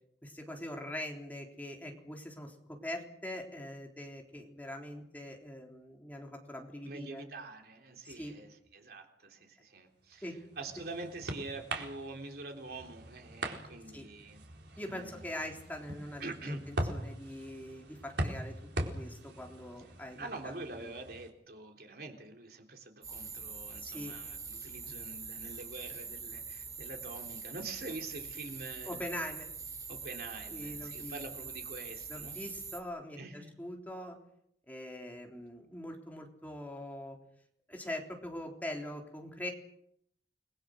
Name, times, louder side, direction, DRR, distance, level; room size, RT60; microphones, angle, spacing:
voice 1, 0.2-7.2 8.0-8.3 10.2-10.4 13.9-14.1 14.8-18.5 18.9-20.3 20.7-20.9 23.8-24.1 28.9-29.5 30.5-31.2 32.1-34.2 34.7-37.2 37.7-39.5, left 1 dB, 10° left, 1 dB, 3.7 m, -42 dB
voice 2, 6.8-10.3 10.6-14.4 14.9-15.2 16.2-16.6 20.2-29.0 29.9-32.4 33.2-33.5, right 2 dB, 60° right, 3 dB, 3.6 m, -45 dB
sound 1, 10.2-21.3, right 1 dB, 85° right, 4.3 m, -41 dB
sound 2, 23.0-32.8, right 5 dB, 20° right, 2.9 m, -44 dB
29.5 x 21.0 x 6.5 m, 0.73 s
head